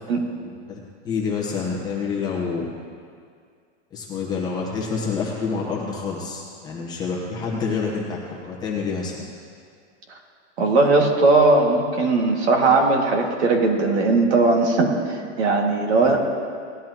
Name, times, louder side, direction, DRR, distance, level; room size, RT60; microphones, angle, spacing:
voice 1, 0.4-0.8 1.0-2.7 3.9-9.2, left 5 dB, 10° left, -4 dB, 0.9 m, -27 dB
voice 2, 10.6-16.2, right 3 dB, 65° right, 1 dB, 2.1 m, -19 dB
18.0 x 11.0 x 2.9 m, 2.2 s
supercardioid pair, 180°, 36 cm